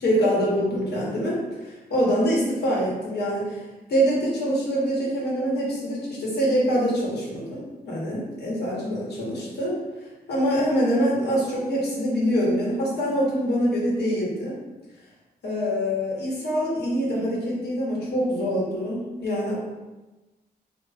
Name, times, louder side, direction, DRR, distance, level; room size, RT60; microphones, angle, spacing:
voice 1, 0.0-3.6 3.9-9.8 10.3-14.6 15.4-19.5, equal, 80° left, -5 dB, 1.2 m, -24 dB
3.5 x 2.4 x 3.4 m, 1.1 s
cardioid pair, 95°, 17 cm